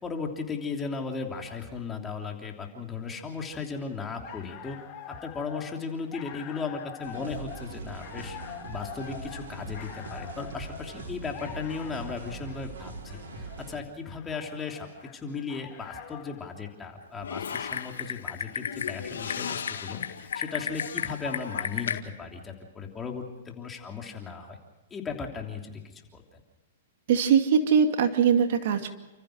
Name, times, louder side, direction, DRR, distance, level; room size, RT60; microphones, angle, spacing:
voice 1, 0.0-4.8 5.1-8.4 8.7-14.9 15.1-24.6 24.9-26.2, left 5 dB, 15° left, 2 dB, 3.1 m, -36 dB
sound 1, 4.0-16.5, left 9 dB, 35° left, 3.1 m, -45 dB
sound 2, 7.0-13.8, right 3 dB, 80° right, 4.3 m, -42 dB
Typing, 17.2-22.0, left 7 dB, 90° left, 1.8 m, -33 dB
voice 2, 27.1-28.9, right 7 dB, 60° right, 6 dB, 2.4 m, -21 dB
30.0 x 14.5 x 6.4 m, 1.1 s
hypercardioid pair, 140°, 0 cm